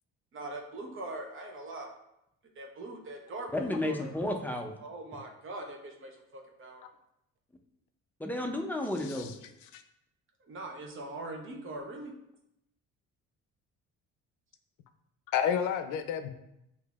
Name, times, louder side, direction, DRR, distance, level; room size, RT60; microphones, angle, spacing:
voice 1, 0.3-1.9 2.6-4.1 4.8-6.8 10.5-12.1, right 2 dB, 45° right, 2 dB, 0.8 m, -42 dB
voice 2, 3.5-4.8 8.2-9.3, left 1 dB, 5° left, 2 dB, 0.5 m, -32 dB
voice 3, 9.0-9.3 9.7-9.8 15.3-16.3, left 8 dB, 85° left, 9 dB, 0.5 m, -30 dB
6.6 x 2.7 x 2.4 m, 0.81 s
cardioid pair, 110°, 30 cm